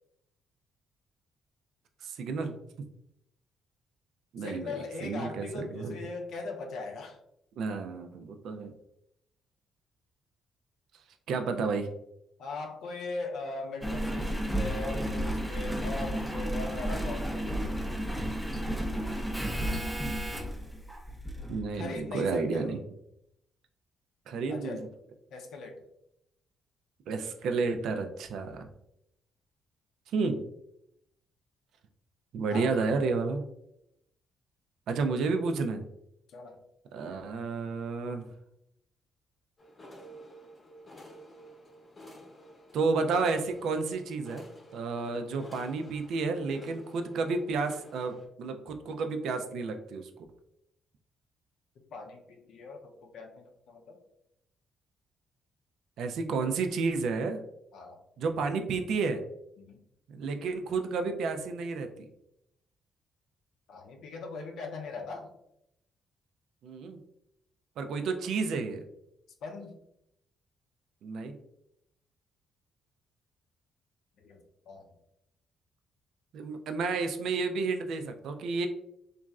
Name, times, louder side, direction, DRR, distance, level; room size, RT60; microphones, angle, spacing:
voice 1, 2.0-2.6 4.3-4.7 5.0-6.0 7.6-8.7 11.3-11.9 21.5-22.8 24.3-24.9 27.1-28.7 30.1-30.4 32.3-33.4 34.9-35.8 36.9-38.3 42.7-44.4 44.7-50.1 56.0-57.4 58.2-59.2 60.1-61.9 66.6-67.0 67.8-68.8 71.0-71.4 76.3-78.7, right 4 dB, 75° right, 6 dB, 0.3 m, -31 dB
voice 2, 4.4-7.2 12.4-18.0 21.7-22.8 24.5-24.8 25.3-25.8 32.5-33.0 36.3-36.6 51.9-54.0 57.7-58.0 59.6-59.8 63.7-65.3 69.4-69.8 74.2-74.4 74.7-74.9, left 3 dB, 75° left, 3 dB, 0.5 m, -40 dB
Engine, 13.8-21.7 22.3-22.4, equal, ahead, 0.4 m, -32 dB
sound 1, 39.6-48.3, equal, 35° left, 0.7 m, -51 dB
3.0 x 2.4 x 2.3 m, 0.79 s
cardioid pair, 90°, 0 cm